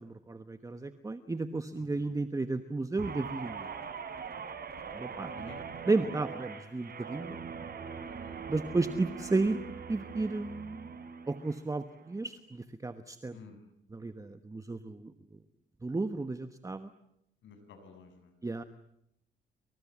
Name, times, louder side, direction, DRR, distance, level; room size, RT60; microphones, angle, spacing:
voice 1, 0.0-3.7 4.9-5.5 5.8-7.4 8.5-9.6 9.9-10.9 11.3-13.4 13.9-15.1 15.8-16.9 18.4-18.6, right 3 dB, 15° right, 11 dB, 1.2 m, -33 dB
voice 2, 1.8-2.1 5.2-5.6 8.0-8.4 13.3-13.6 17.4-18.3, left 5 dB, 70° left, 8 dB, 6.9 m, -52 dB
Guitar, 3.0-11.6 12.0-12.3, right 6 dB, 50° right, 4.1 m, -42 dB
28.0 x 27.5 x 7.4 m, 0.76 s
cardioid pair, 90°, 20 cm